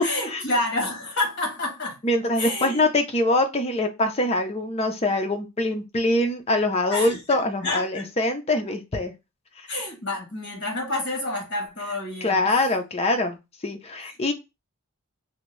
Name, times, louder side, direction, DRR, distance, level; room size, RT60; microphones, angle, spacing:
voice 1, 0.0-2.0 2.4-2.9 6.9-8.1 9.7-12.6 14.1-14.3, left 2 dB, 55° left, 1.3 m, -29 dB
voice 2, 2.0-9.1 9.6-9.7 12.2-13.4 13.6-14.3, left 2 dB, 30° left, 0.5 m, -24 dB
2.8 x 2.6 x 3.1 m
head